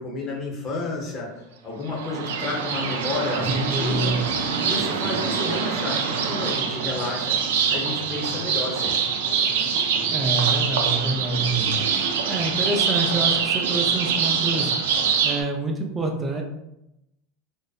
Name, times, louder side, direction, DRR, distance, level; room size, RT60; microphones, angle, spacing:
voice 1, 0.0-1.3 1.6-4.1 4.6-7.4 7.7-9.0, left 2 dB, 30° left, -2 dB, 0.8 m, -31 dB
sound 1, 1.9-15.4, right 6 dB, 90° right, 0.3 m, -24 dB
voice 2, 3.5-4.2 10.1-11.8 12.3-14.7 15.2-16.4, right 2 dB, 20° right, 2 dB, 0.4 m, -27 dB
2.6 x 2.0 x 2.3 m, 0.87 s
supercardioid pair, 130°, 0 cm